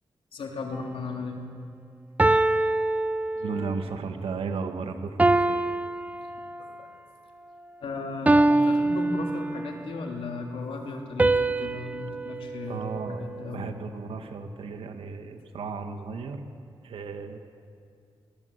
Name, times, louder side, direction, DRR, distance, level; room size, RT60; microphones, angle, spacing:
voice 1, 0.3-1.4 6.8-6.9 7.8-13.7, left 3 dB, 80° left, 1 dB, 3.5 m, -36 dB
sound 1, 0.7-1.1 2.2-3.8 5.2-6.8 8.3-9.9 11.2-13.6, right 2 dB, 15° right, 0.7 m, -25 dB
voice 2, 3.3-5.6 12.7-16.4 16.8-17.4, right 4 dB, 90° right, 6 dB, 1.6 m, -35 dB
24.5 x 19.5 x 8.1 m, 2.3 s
wide cardioid pair, 105°, 9 cm